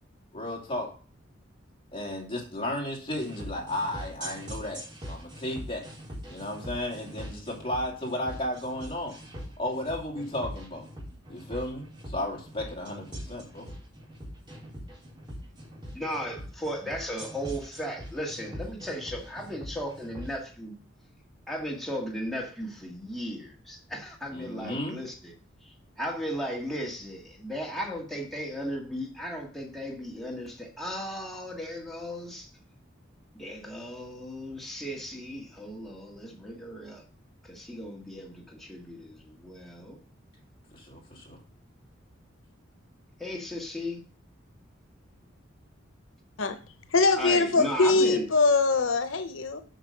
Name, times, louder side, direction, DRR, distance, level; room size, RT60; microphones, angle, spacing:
voice 1, 0.3-0.9 1.9-5.9 6.3-9.1 9.6-10.9 11.3-13.7 24.3-25.0 40.7-41.4, left 1 dB, 30° left, -1 dB, 2.6 m, -34 dB
sound 1, 3.2-20.3, equal, 25° right, 4.3 m, -42 dB
voice 2, 15.9-20.7 21.5-25.3 25.6-32.5 33.3-37.0 37.4-40.0 43.2-44.0 47.2-48.2, equal, ahead, -2 dB, 1.8 m, -36 dB
voice 3, 46.9-49.6, left 3 dB, 85° left, 9 dB, 0.9 m, -22 dB
8.2 x 6.1 x 5.2 m, 0.40 s
head